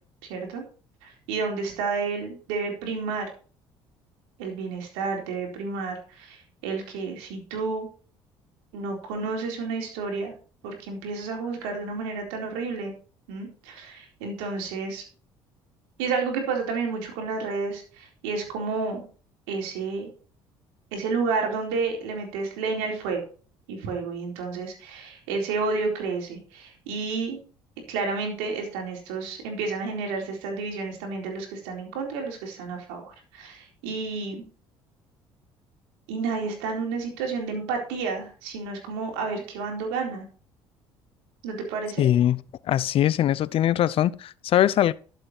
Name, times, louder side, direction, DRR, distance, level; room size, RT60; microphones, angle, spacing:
voice 1, 0.3-0.6 1.0-3.3 4.4-7.9 8.7-10.3 10.6-12.9 13.3-15.0 16.0-19.0 19.5-20.1 20.9-23.2 23.7-27.4 27.9-34.4 36.1-40.3 41.4-42.0, right 4 dB, 85° right, 4.0 m, -30 dB
voice 2, 42.0-42.4 42.6-44.9, left 11 dB, 55° left, 0.7 m, -21 dB
12.0 x 7.8 x 4.4 m
supercardioid pair, 70°, 11 cm